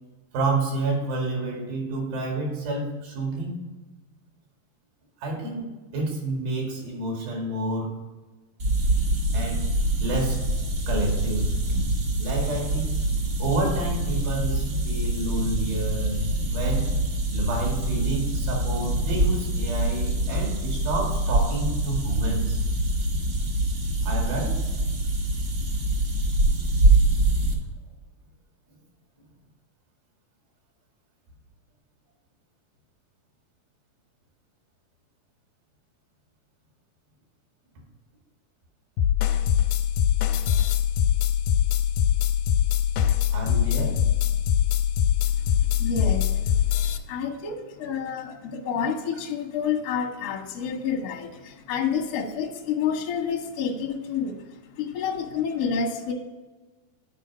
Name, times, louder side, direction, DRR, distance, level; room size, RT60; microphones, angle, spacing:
voice 1, 0.3-3.6 5.2-7.9 9.3-9.7 10.0-10.4 10.9-11.6 12.2-13.0 13.4-17.0 17.3-22.6 24.0-24.6 43.3-44.0, right 2 dB, 80° right, 0 dB, 4.0 m, -29 dB
sound 1, 8.6-27.5, right 2 dB, 60° right, 1.1 m, -25 dB
sound 2, 39.0-47.0, left 10 dB, 90° left, 2.4 m, -22 dB
voice 2, 45.8-46.5 47.1-56.1, left 6 dB, 70° left, 2 dB, 1.4 m, -29 dB
9.1 x 5.1 x 4.9 m, 1.2 s
omnidirectional pair, 4.2 m